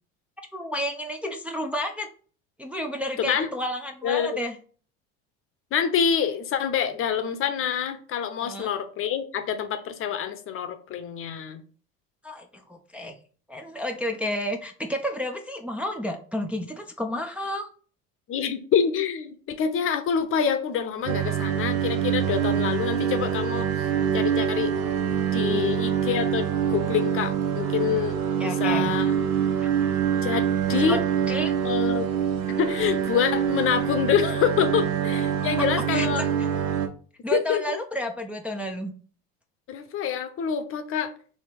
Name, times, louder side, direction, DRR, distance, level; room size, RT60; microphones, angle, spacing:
voice 1, 0.5-2.1 2.6-4.6 8.4-8.7 12.2-13.2 13.5-17.7 25.5-25.7 28.4-28.9 29.6-29.7 30.7-31.0 31.3-31.5 35.6-36.5 37.2-38.9, equal, 5° right, 2 dB, 0.4 m, -31 dB
voice 2, 4.0-4.4 5.7-11.6 18.3-23.7 24.1-24.7 25.3-28.2 28.4-29.1 30.2-31.0 31.6-32.1 32.6-36.2 37.3-37.8 39.7-41.1, left 8 dB, 45° left, 10 dB, 0.7 m, -26 dB
sound 1, 21.0-36.9, right 8 dB, 65° right, 0.8 m, -25 dB
3.3 x 2.8 x 4.5 m, 0.42 s
supercardioid pair, 90°, 30 cm